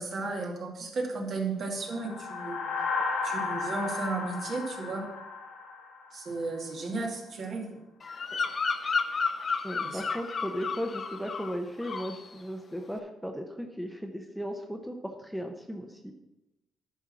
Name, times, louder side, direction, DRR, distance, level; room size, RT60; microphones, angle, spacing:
voice 1, 0.0-2.6 3.2-5.1 6.1-7.8 9.8-10.0, right 3 dB, 55° right, 0 dB, 2.1 m, -34 dB
sound 1, 1.9-6.4, left 4 dB, 75° left, 1.3 m, -34 dB
Bird vocalization bird call bird song, 8.0-11.6 11.8-12.2, left 5 dB, 40° left, 0.7 m, -32 dB
voice 2, 9.6-16.1, equal, ahead, 4 dB, 0.8 m, -36 dB
10.5 x 4.5 x 5.9 m, 0.95 s
cardioid pair, 90°, 0 cm